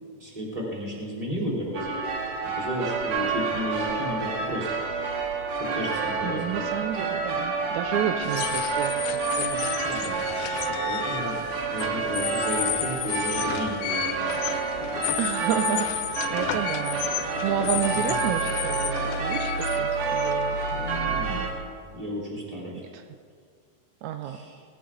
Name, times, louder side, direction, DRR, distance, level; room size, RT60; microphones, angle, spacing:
voice 1, 0.2-2.0 2.6-4.7 5.7-6.6 9.8-10.2 10.6-11.4 11.7-14.3 17.9-18.0 20.7-21.4 21.9-22.8 24.3-24.5, equal, 10° right, -5 dB, 3.9 m, -33 dB
sound 1, 1.7-21.5, right 4 dB, 50° right, 2.6 m, -29 dB
voice 2, 6.2-9.8 15.2-17.0 17.4-20.6 22.9-23.0 24.0-24.4, right 9 dB, 85° right, 7 dB, 1.7 m, -31 dB
sound 2, 8.2-20.9, left 15 dB, 90° left, 1.7 m, -33 dB
19.5 x 15.0 x 3.9 m, 2.1 s
omnidirectional pair, 4.1 m